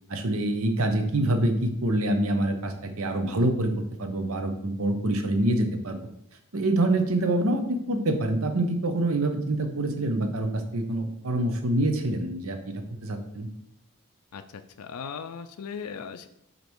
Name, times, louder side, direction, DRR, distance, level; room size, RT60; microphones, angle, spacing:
voice 1, 0.1-3.7 4.0-6.0 6.5-12.6 13.0-13.5, right 1 dB, 70° right, 6 dB, 0.8 m, -26 dB
voice 2, 14.3-16.3, left 6 dB, 85° left, 8 dB, 0.4 m, -38 dB
5.2 x 4.0 x 4.6 m, 0.74 s
head